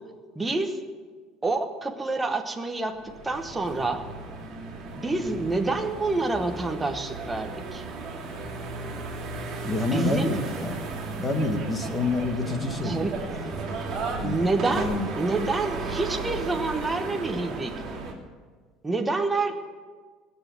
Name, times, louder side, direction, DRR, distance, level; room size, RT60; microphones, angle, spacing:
voice 1, 0.3-0.8 1.4-3.0 3.2-4.0 5.0-7.8 9.8-10.4 12.8-13.1 14.2-14.9 15.2-17.7 18.8-19.5, right 3 dB, 10° right, 4 dB, 1.0 m, -27 dB
sound 1, 2.9-18.1, right 3 dB, 30° right, 3.0 m, -35 dB
voice 2, 9.6-10.8 11.2-13.0 13.3-13.8 14.2-15.1, left 2 dB, 15° left, 5 dB, 1.4 m, -28 dB
20.0 x 7.2 x 8.0 m, 1.5 s
cardioid pair, 175°, 0 cm